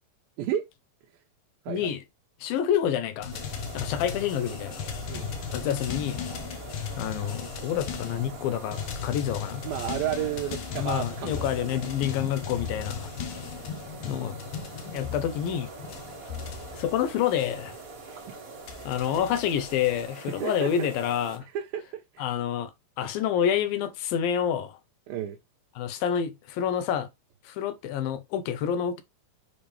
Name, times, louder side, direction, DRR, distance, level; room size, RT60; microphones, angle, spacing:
voice 1, 1.7-2.0 2.4-3.3 3.7-4.8 5.5-6.2 7.0-9.6 10.7-13.1 14.0-14.4 14.9-15.7 16.7-17.8 18.9-21.5 22.2-22.7 23.0-24.8 25.8-27.1 27.5-29.0, left 9 dB, 85° left, 2.7 m, -28 dB
sound 1, 3.2-18.0 18.6-20.1, left 7 dB, 70° left, 2.5 m, -37 dB
sound 2, 3.3-21.4, right 3 dB, 40° right, 1.3 m, -44 dB
voice 2, 9.6-11.9 18.8-19.1 20.4-20.9 21.4-22.2 25.1-25.4, right 11 dB, 85° right, 2.7 m, -33 dB
7.1 x 5.1 x 3.3 m
omnidirectional pair, 4.1 m